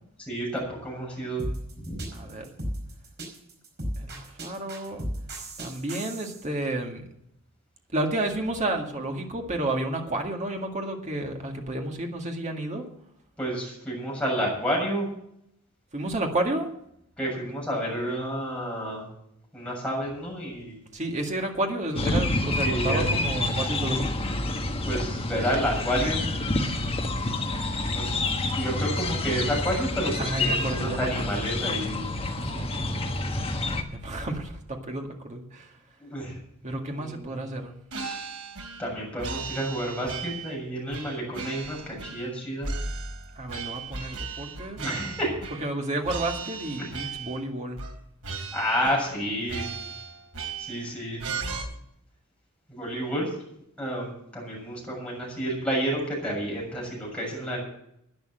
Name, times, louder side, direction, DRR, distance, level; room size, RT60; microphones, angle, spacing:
voice 1, 0.3-1.4 1.8-2.0 13.4-15.1 17.2-19.1 19.5-20.8 22.6-23.0 24.8-26.2 27.9-28.1 28.5-32.1 36.0-36.4 36.9-37.4 38.8-42.7 44.8-45.3 48.5-49.7 50.6-51.2 52.7-53.3 53.8-57.6, equal, 5° left, -4 dB, 7.1 m, -30 dB
sound 1, 1.4-6.4, equal, 50° right, 5.1 m, -34 dB
voice 2, 2.1-2.5 4.0-5.1 5.6-7.0 7.9-12.8 15.9-16.7 20.9-24.1 30.2-31.4 32.2-33.7 33.9-35.8 36.6-37.7 43.3-44.8 45.6-47.8, right 1 dB, 35° right, 2 dB, 2.0 m, -31 dB
sound 2, 21.9-33.8, left 2 dB, 25° left, 1.4 m, -28 dB
sound 3, 37.9-38.9 39.2-40.6 40.9-42.3 42.6-45.8 46.0-47.4 47.8-48.0 48.2-49.2 49.5-50.9 51.2-51.6, right 4 dB, 85° right, 2.9 m, -36 dB
11.0 x 10.0 x 7.7 m, 0.75 s
head